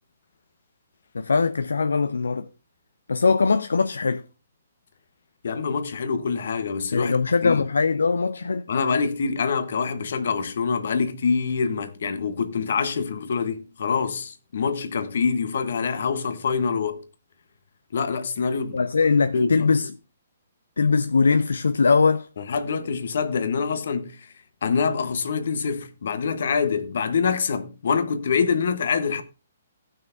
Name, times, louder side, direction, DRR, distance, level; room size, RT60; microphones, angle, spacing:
voice 1, 1.1-2.5 3.1-4.2 6.9-8.7 18.7-19.9 20.8-22.3, left 4 dB, 80° left, 0.4 m, -21 dB
voice 2, 5.4-7.2 7.4-7.7 8.7-17.0 17.9-18.8 19.3-19.7 22.4-24.3 24.6-29.2, left 5 dB, 65° left, 1.0 m, -25 dB
17.5 x 6.1 x 2.6 m
hypercardioid pair, 135°, 0 cm